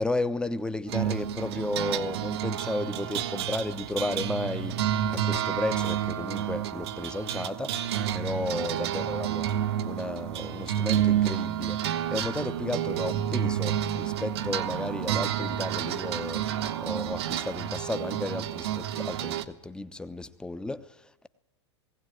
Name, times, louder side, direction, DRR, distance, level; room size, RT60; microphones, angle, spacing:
voice 1, 0.0-4.8 5.1-7.8 8.1-9.5 9.8-16.4 16.8-21.3, left 2 dB, 5° left, 1.0 m, -33 dB
sound 1, 0.9-19.4, right 10 dB, 60° right, 1.2 m, -30 dB
19.5 x 17.0 x 9.3 m
figure-of-eight pair, 95°, 15 cm